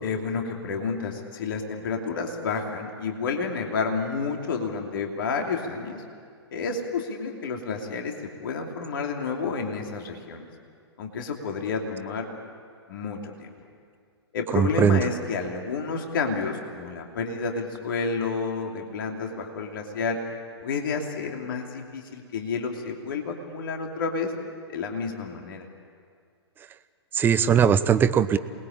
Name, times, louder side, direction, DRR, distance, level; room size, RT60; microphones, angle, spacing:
voice 1, 0.0-6.0 6.5-8.1 8.4-10.5 11.0-12.3 12.9-13.5 14.3-20.2 20.6-24.3 24.7-25.7, left 4 dB, 55° left, 2 dB, 2.8 m, -30 dB
voice 2, 14.5-15.0 27.1-28.4, right 7 dB, 15° right, 13 dB, 0.8 m, -20 dB
28.0 x 20.5 x 8.8 m, 2.1 s
figure-of-eight pair, 115°, 14 cm